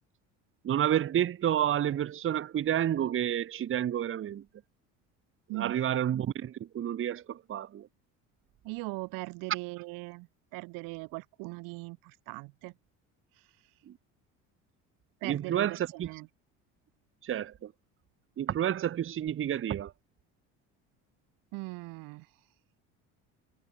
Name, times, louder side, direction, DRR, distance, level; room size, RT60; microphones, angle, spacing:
voice 1, 0.6-4.4 5.5-7.9 13.9-14.0 15.2-16.1 17.2-17.7 18.4-19.9, right 10 dB, 40° right, 0.9 m, -30 dB
voice 2, 8.6-10.3 10.5-12.7 15.2-16.3 21.5-22.3, right 26 dB, 75° right, 1.0 m, -39 dB
supercardioid pair, 85°, 34 cm